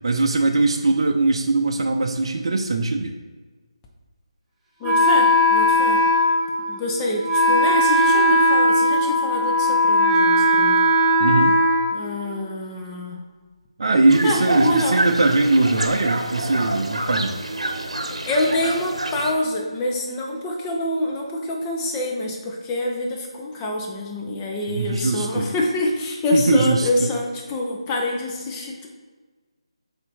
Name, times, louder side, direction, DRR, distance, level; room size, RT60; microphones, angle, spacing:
voice 1, 0.0-3.1 11.2-11.5 13.8-17.4 24.7-25.5 26.3-27.1, right 2 dB, 55° right, 3 dB, 0.6 m, -20 dB
voice 2, 4.8-6.0 6.7-10.8 11.9-13.2 14.2-15.0 18.3-28.9, left 1 dB, 15° left, -1 dB, 0.9 m, -26 dB
Wind instrument woodwind instrument, 4.8-12.6, left 1 dB, 5° right, 1.4 m, -18 dB
sound 1, 14.1-19.3, right 1 dB, 90° right, 0.9 m, -27 dB
7.9 x 2.8 x 4.6 m, 1.4 s
figure-of-eight pair, 160°, 3 cm